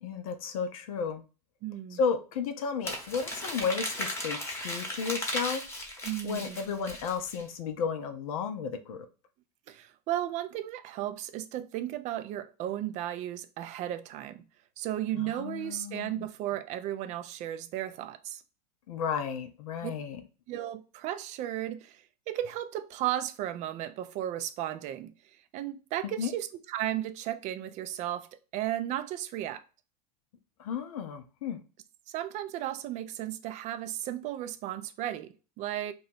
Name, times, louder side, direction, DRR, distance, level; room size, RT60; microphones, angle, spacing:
voice 1, 0.0-1.2 1.9-5.6 6.2-9.1 15.2-16.3 18.9-20.2 26.2-26.3 30.6-31.6, left 6 dB, 60° left, 0.6 m, -33 dB
voice 2, 1.6-2.0 6.0-6.6 9.7-14.4 14.8-18.4 19.8-19.9 20.5-25.1 25.5-29.6 32.1-35.9, right 12 dB, 35° right, 0.4 m, -35 dB
Crumpling crinkling, 2.8-7.4, left 1 dB, 10° left, 1.0 m, -36 dB
2.8 x 2.3 x 4.2 m
figure-of-eight pair, 85°, 21 cm